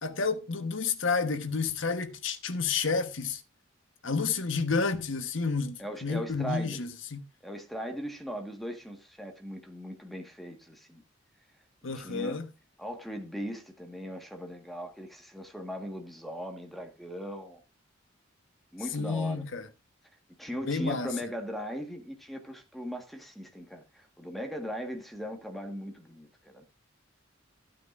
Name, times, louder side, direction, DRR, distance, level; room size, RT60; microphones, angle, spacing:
voice 1, 0.0-3.4 4.0-7.3 11.8-12.5 18.9-19.7 20.7-21.1, left 4 dB, 70° left, 1.2 m, -30 dB
voice 2, 5.8-6.8 7.4-11.0 11.9-12.4 12.8-17.6 18.7-19.5 20.4-26.6, equal, ahead, 1.6 m, -39 dB
14.0 x 9.2 x 2.6 m
head